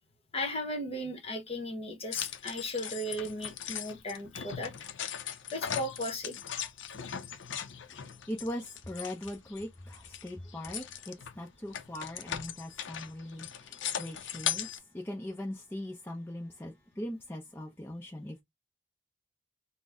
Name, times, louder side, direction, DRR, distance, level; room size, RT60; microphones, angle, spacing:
voice 1, 0.3-4.7 5.5-6.4, left 1 dB, 30° left, 1.1 m, -36 dB
sound 1, 2.1-9.6 9.9-14.8, left 9 dB, 70° left, 0.5 m, -39 dB
voice 2, 7.9-14.7 14.9-18.4, left 1 dB, 10° left, 0.6 m, -40 dB
3.9 x 2.1 x 3.5 m
head